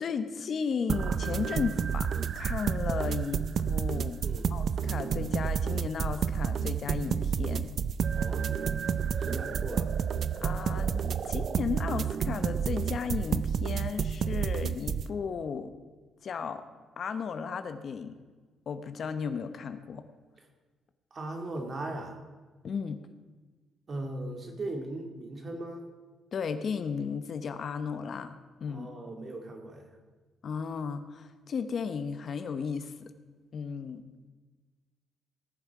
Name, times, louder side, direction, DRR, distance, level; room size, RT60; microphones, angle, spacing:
voice 1, 0.0-4.2 4.5-7.8 10.4-15.7 16.2-16.6 17.0-18.2 18.7-20.1 22.6-23.0 24.0-24.1 26.3-28.9 30.4-33.1 33.5-34.0, left 6 dB, 55° left, 10 dB, 0.9 m, -35 dB
sound 1, 0.9-15.0, right 7 dB, 55° right, 0.4 m, -30 dB
voice 2, 4.2-4.6 8.1-8.5 9.2-10.0 21.1-22.2 23.9-25.9 28.7-29.9, right 2 dB, 40° right, 3 dB, 2.3 m, -38 dB
18.0 x 7.2 x 4.8 m, 1.3 s
cardioid pair, 90°, 0 cm